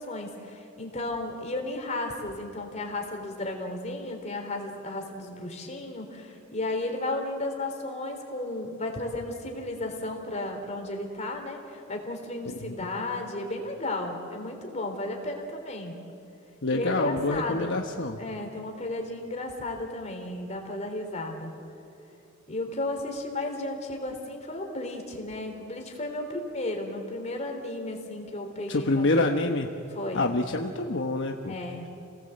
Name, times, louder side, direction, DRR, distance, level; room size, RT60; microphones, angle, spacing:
voice 1, 0.0-15.9 16.7-17.8 18.2-21.5 22.5-29.3 30.0-30.2 31.5-31.9, left 2 dB, 35° left, 3 dB, 3.5 m, -34 dB
voice 2, 16.6-18.2 28.7-29.7 30.1-31.5, left 2 dB, 65° left, 3 dB, 1.2 m, -26 dB
29.5 x 18.0 x 8.0 m, 2.7 s
head